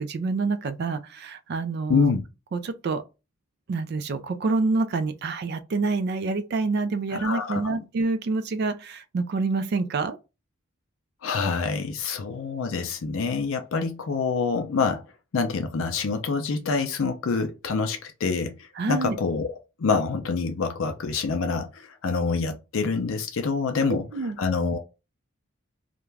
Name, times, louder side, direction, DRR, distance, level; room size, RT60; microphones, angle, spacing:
voice 1, 0.0-2.1 2.5-3.0 3.7-10.2 18.8-19.2 23.9-24.4, right 3 dB, 50° right, 0.3 m, -27 dB
voice 2, 1.9-2.2 7.2-7.8 11.2-15.0 15.3-19.5 19.8-24.1 24.4-24.8, left 4 dB, 70° left, 0.4 m, -26 dB
2.4 x 2.2 x 3.1 m
head